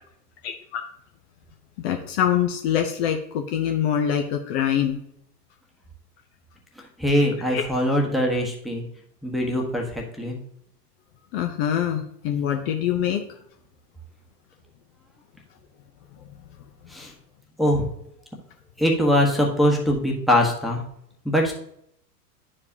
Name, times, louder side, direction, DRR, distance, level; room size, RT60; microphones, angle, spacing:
voice 1, 0.4-0.8 1.8-5.0 7.5-7.6 11.3-13.2, left 9 dB, 40° left, 5 dB, 0.7 m, -24 dB
voice 2, 7.0-8.8 9.2-10.4 16.9-17.1 17.6-17.8 18.8-20.8 21.2-21.5, equal, ahead, -2 dB, 1.2 m, -22 dB
10.5 x 4.9 x 2.8 m, 0.72 s
hypercardioid pair, 100°, 48 cm